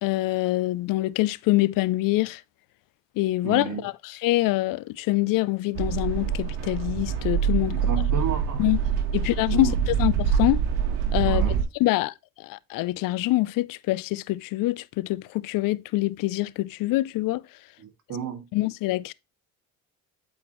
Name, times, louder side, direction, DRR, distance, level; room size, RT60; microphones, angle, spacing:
voice 1, 0.0-2.4 3.2-7.8 8.6-8.8 9.1-10.6 11.1-11.5 11.8-17.4 18.5-19.1, left 18 dB, 65° left, 0.5 m, -25 dB
voice 2, 3.4-3.8 7.7-8.7 9.1-9.8 11.2-11.6 17.8-18.5, right 6 dB, 50° right, 2.2 m, -33 dB
sound 1, 5.7-11.6, right 7 dB, 85° right, 1.4 m, -25 dB
8.0 x 4.8 x 3.0 m
supercardioid pair, 80°, 37 cm